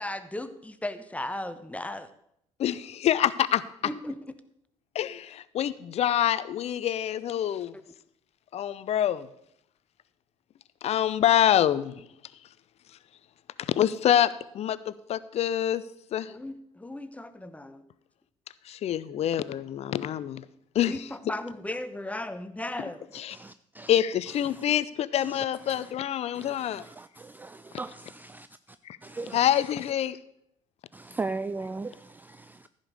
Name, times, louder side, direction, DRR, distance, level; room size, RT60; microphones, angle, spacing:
voice 1, 0.0-2.1 3.8-4.2 16.3-17.8 20.9-23.1, left 1 dB, 10° left, 1.0 m, -36 dB
voice 2, 2.6-3.6 4.9-7.7 8.5-9.3 10.8-12.0 13.6-15.8 16.1-16.3 18.7-20.4 20.7-20.9 23.1-23.3 23.9-26.9 28.9-29.0 29.3-30.2, left 11 dB, 40° left, 0.6 m, -26 dB
voice 3, 23.3-23.9 24.4-24.6 25.2-25.9 26.3-28.8 29.0-29.9 30.9-32.7, right 3 dB, 10° right, 0.4 m, -39 dB
14.5 x 5.2 x 6.4 m
figure-of-eight pair, 50°, 16 cm